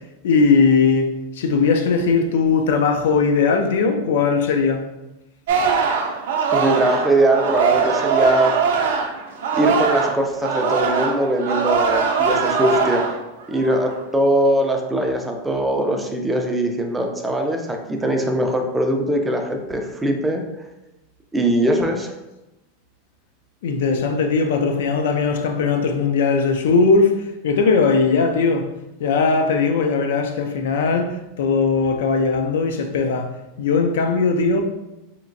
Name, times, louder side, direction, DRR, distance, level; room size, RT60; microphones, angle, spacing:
voice 1, 0.2-4.8 23.6-28.7 29.0-33.3 33.6-34.6, left 4 dB, 75° left, 0.4 m, -19 dB
Singing, 5.5-10.2 10.4-13.2 13.6-14.0, right 5 dB, 75° right, 0.4 m, -21 dB
voice 2, 6.5-8.6 9.5-13.1 13.5-20.4 21.3-22.1, right 1 dB, 10° right, 0.3 m, -21 dB
3.2 x 2.9 x 2.5 m
supercardioid pair, 160°, 0 cm